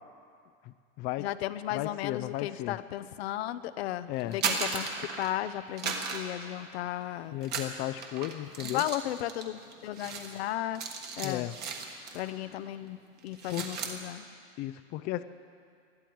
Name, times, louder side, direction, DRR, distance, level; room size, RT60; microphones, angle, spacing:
voice 1, 0.6-1.3 1.7-2.8 4.1-4.4 7.3-8.8 11.2-11.6 13.5-13.6 14.6-15.2, left 15 dB, 30° left, 11 dB, 0.4 m, -34 dB
voice 2, 1.2-4.9 5.2-7.4 8.6-10.8 11.2-11.5 12.1-13.0 13.2-14.3, left 13 dB, 80° left, 13 dB, 0.7 m, -35 dB
sound 1, 4.2-5.4 5.8-7.0 7.4-12.3 12.6-12.9 13.2-14.0, right 5 dB, 30° right, 1.5 m, -36 dB
20.5 x 13.0 x 4.6 m, 2.3 s
supercardioid pair, 145°, 31 cm